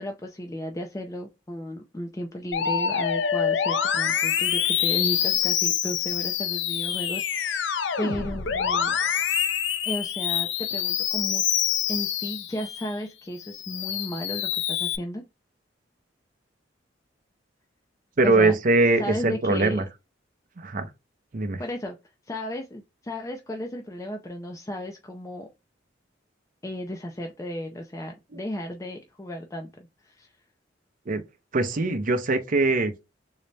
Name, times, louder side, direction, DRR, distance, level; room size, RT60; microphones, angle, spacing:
voice 1, 0.0-9.0 9.8-11.4 11.9-15.2 18.2-18.6 19.0-19.8 21.6-22.0 22.3-25.5 26.6-30.3, equal, 15° left, 0.4 m, -34 dB
Musical instrument, 2.5-12.9 13.4-15.0, left 8 dB, 70° left, 0.5 m, -26 dB
voice 2, 18.2-19.8 20.6-20.9 21.3-21.6 28.3-28.4 31.1-31.2 31.5-32.9, right 2 dB, 45° right, 0.6 m, -22 dB
3.9 x 2.1 x 3.2 m
head